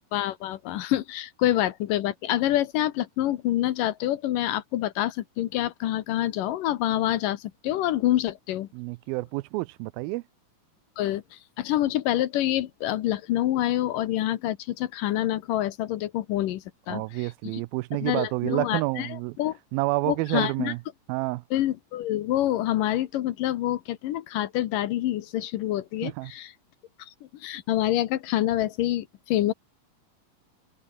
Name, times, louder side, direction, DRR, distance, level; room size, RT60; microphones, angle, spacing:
voice 1, 0.1-8.7 11.0-17.6 18.0-19.6 20.1-20.7 21.5-26.5 27.4-29.5, left 13 dB, 70° left, 2.5 m, -27 dB
voice 2, 8.7-10.2 16.9-19.4 19.7-20.8 21.1-21.4 26.0-26.3, right 21 dB, 85° right, 2.3 m, -29 dB
open air
omnidirectional pair, 4.3 m